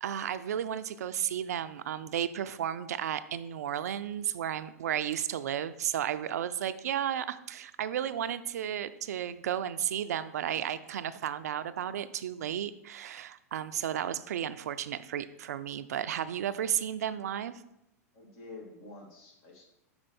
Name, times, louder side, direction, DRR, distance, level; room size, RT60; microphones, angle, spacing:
voice 1, 0.0-17.6, right 10 dB, 75° right, 13 dB, 0.4 m, -33 dB
voice 2, 18.1-19.6, left 2 dB, 55° left, 0 dB, 2.0 m, -48 dB
6.3 x 4.3 x 4.3 m, 0.84 s
hypercardioid pair, 105°, 9 cm